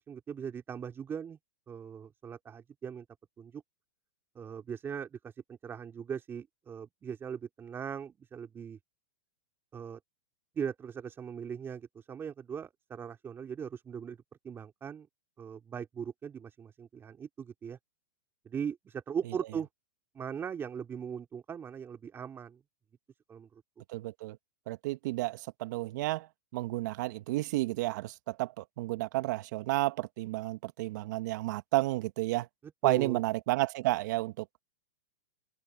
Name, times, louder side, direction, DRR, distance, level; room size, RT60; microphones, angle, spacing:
voice 1, 0.0-1.4 1.7-3.1 3.4-3.6 4.4-8.8 9.7-10.0 10.6-14.2 14.4-15.1 15.4-17.8 18.5-19.7 20.1-22.6 23.3-23.6 32.8-33.2, right 7 dB, 20° right, 3.7 m, -39 dB
voice 2, 23.9-24.4 24.7-26.3 26.5-32.5 32.8-34.5, right 19 dB, 60° right, 1.9 m, -31 dB
hypercardioid pair, 125°, 11 cm